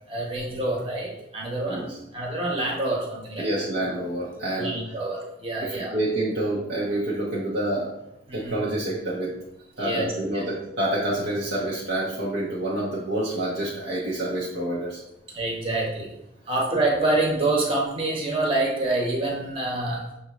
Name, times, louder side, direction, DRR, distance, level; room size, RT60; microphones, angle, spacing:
voice 1, 0.1-3.5 4.6-5.9 8.3-8.7 9.8-10.1 15.3-16.1 16.5-20.0, right 2 dB, 30° right, -3 dB, 1.1 m, -26 dB
voice 2, 3.4-5.0 5.6-7.9 8.3-9.4 9.8-15.0, right 1 dB, 75° right, -8 dB, 0.9 m, -28 dB
6.3 x 2.6 x 3.0 m, 0.88 s
head